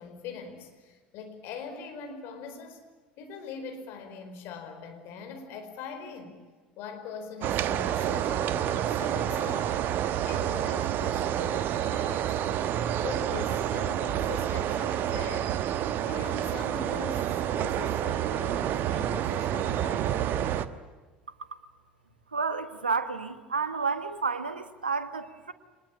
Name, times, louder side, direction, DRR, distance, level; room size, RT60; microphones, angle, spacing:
voice 1, 0.0-2.8 3.2-6.4 6.8-9.8 10.2-12.4 13.0-15.5 16.1-20.6, left 5 dB, 50° left, 5 dB, 4.6 m, -42 dB
sound 1, 7.4-20.7, right 11 dB, 45° right, 1.1 m, -29 dB
voice 2, 22.3-25.5, right 4 dB, 80° right, 11 dB, 1.3 m, -30 dB
25.5 x 21.0 x 8.6 m, 1.4 s
figure-of-eight pair, 65°, 5 cm